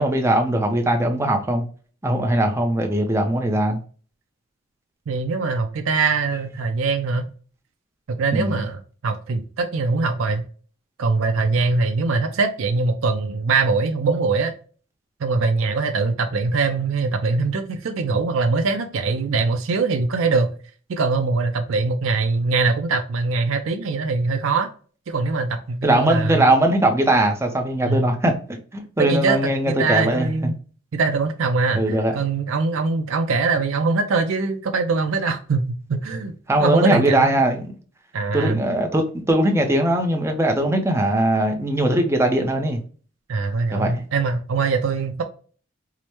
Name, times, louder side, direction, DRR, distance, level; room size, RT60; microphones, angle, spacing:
voice 1, 0.0-1.6 2.0-3.8 8.3-8.6 25.8-30.3 31.7-32.1 36.5-37.6 38.3-42.8 43.7-44.0, right 1 dB, 15° right, 0.6 m, -20 dB
voice 2, 5.1-7.2 8.1-10.4 11.0-14.5 15.2-20.5 20.9-24.7 25.1-26.5 27.9-28.1 29.0-30.5 30.9-36.3 36.6-37.4 38.1-38.6 43.3-45.2, right 4 dB, 85° right, 0.5 m, -22 dB
4.8 x 2.1 x 2.9 m
head